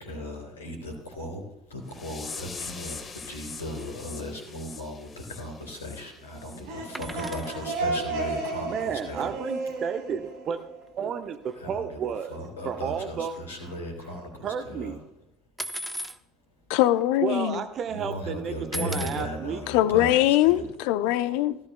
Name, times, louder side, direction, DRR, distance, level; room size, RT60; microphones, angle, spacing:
voice 1, 0.0-1.4 1.7-9.3 11.6-15.0 17.9-20.6, left 1 dB, 80° left, 3 dB, 3.3 m, -37 dB
sound 1, 1.9-6.6 7.0-7.2 7.6-7.8 8.3-8.4 8.9-9.0, left 5 dB, 30° left, 1.4 m, -43 dB
sound 2, 6.5-11.2, right 3 dB, 65° right, 3.1 m, -33 dB
sound 3, 6.9-7.6 9.8-9.9 10.1-10.3 10.5-10.7 11.5-11.6 12.0-12.5 12.7-14.2 15.6-16.2 17.0-17.1 17.3-17.8 18.7-19.3 20.5-20.6, right 1 dB, 5° right, 0.8 m, -38 dB
voice 2, 8.6-10.6 11.0-12.4 12.6-13.3 14.4-15.0 17.2-19.6, right 7 dB, 45° right, 8 dB, 0.9 m, -32 dB
voice 3, 16.7-17.6 19.7-21.6, left 14 dB, 65° left, 14 dB, 0.6 m, -22 dB
17.0 x 14.0 x 2.2 m, 0.83 s
figure-of-eight pair, 60°, 0 cm